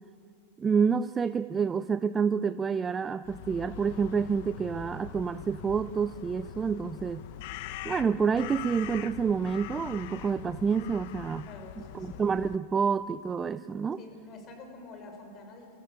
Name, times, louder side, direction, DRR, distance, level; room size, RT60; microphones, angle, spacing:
voice 1, 0.6-7.2 7.8-11.5 11.9-14.0, right 6 dB, 15° right, 13 dB, 0.4 m, -28 dB
sound 1, 3.2-12.6, left 12 dB, 60° left, 0.8 m, -42 dB
voice 2, 11.5-12.2 14.0-15.8, left 3 dB, 35° left, 4 dB, 5.7 m, -47 dB
24.5 x 15.0 x 8.7 m, 2.2 s
supercardioid pair, 130°, 0 cm